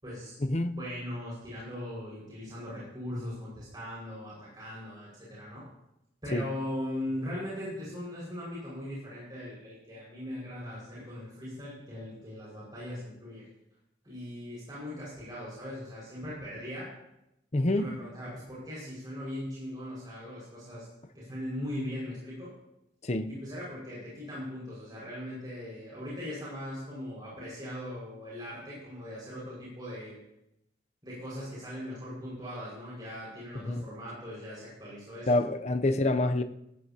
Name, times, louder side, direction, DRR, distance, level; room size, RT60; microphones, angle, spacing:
voice 1, 0.0-0.3 0.7-5.6 6.2-13.5 14.0-16.9 17.7-20.9 21.1-22.5 23.3-30.2 31.0-35.4, left 1 dB, 25° right, -7 dB, 5.5 m, -39 dB
voice 2, 17.5-17.9 23.0-23.3 33.5-33.8 35.3-36.4, left 2 dB, 35° left, 8 dB, 0.7 m, -27 dB
19.0 x 14.5 x 2.9 m, 0.85 s
head